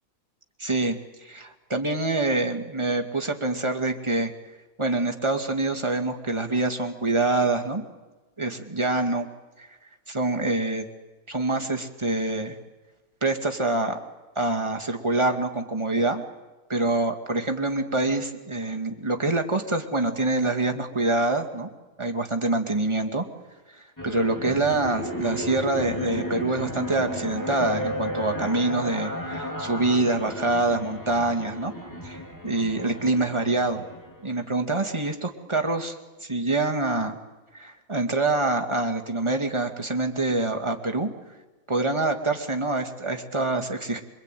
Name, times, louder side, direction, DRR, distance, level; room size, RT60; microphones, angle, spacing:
voice 1, 0.6-4.3 4.8-7.8 8.4-9.3 10.1-10.9 11.3-12.6 13.2-14.0 14.4-16.2 16.7-21.7 22.0-23.2 23.7-31.7 32.0-33.9 34.2-36.0 36.2-37.2 37.5-41.1 41.7-44.0, right 2 dB, 20° right, 3 dB, 2.3 m, -25 dB
sound 1, 24.0-34.4, equal, 15° left, 3.0 m, -34 dB
25.0 x 25.0 x 9.3 m, 1.2 s
omnidirectional pair, 1.5 m